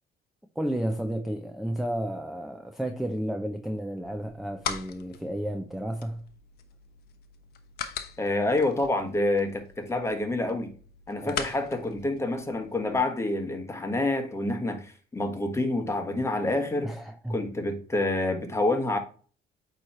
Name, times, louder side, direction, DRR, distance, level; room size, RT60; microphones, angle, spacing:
voice 1, 0.6-6.2 11.2-11.4 16.8-17.4, right 1 dB, ahead, 0.6 m, -32 dB
sound 1, 4.0-13.0, left 8 dB, 70° left, 0.9 m, -41 dB
voice 2, 8.2-10.7 11.1-16.9 17.3-19.0, left 2 dB, 15° left, 1.3 m, -27 dB
8.6 x 3.2 x 4.3 m
cardioid pair, 110°, 17 cm